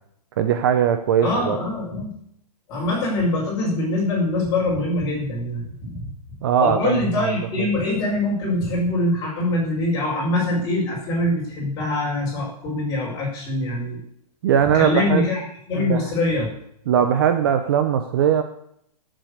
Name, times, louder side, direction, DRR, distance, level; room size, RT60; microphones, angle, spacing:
voice 1, 0.4-1.6 6.4-7.3 14.4-15.2 15.8-16.0 16.9-18.4, right 9 dB, 35° right, 8 dB, 0.8 m, -20 dB
voice 2, 1.2-2.1 2.7-5.9 6.6-14.0 14.7-16.5, left 2 dB, 20° left, -4 dB, 5.9 m, -23 dB
16.5 x 7.7 x 6.8 m, 0.70 s
hypercardioid pair, 165°, 21 cm